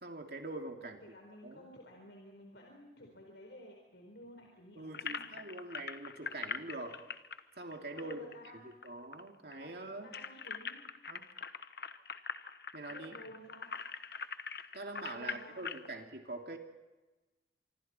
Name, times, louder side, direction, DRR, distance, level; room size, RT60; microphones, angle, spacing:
voice 1, 0.0-1.0 1.4-1.7 4.8-7.0 7.6-8.2 8.6-10.1 11.1-11.2 12.7-13.1 14.7-16.6, right 2 dB, 60° right, 3 dB, 2.9 m, -44 dB
voice 2, 0.8-5.3 7.9-8.8 9.6-9.7 10.0-10.8 12.9-13.7 15.1-15.6, equal, 85° left, 0 dB, 4.5 m, -53 dB
sound 1, 4.9-8.9 9.1-9.2 9.5-15.9, left 6 dB, 60° left, 1.1 m, -42 dB
26.0 x 24.5 x 4.5 m, 1.2 s
head